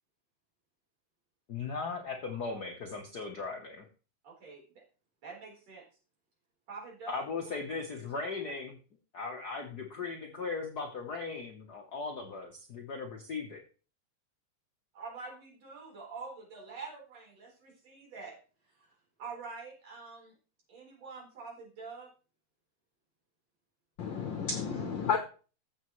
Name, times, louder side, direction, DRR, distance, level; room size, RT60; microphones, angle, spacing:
voice 1, 1.5-3.8 7.1-8.8 9.1-13.6, left 4 dB, 90° left, 3 dB, 0.8 m, -38 dB
voice 2, 4.2-4.8 5.2-5.8 6.7-8.3 14.9-18.4 18.8-18.9 19.2-20.3 20.7-22.1, right 4 dB, 60° right, -3 dB, 5.2 m, -46 dB
voice 3, 24.0-25.2, left 6 dB, 65° left, 5 dB, 1.2 m, -31 dB
14.5 x 6.8 x 3.1 m, 0.36 s
omnidirectional pair, 3.4 m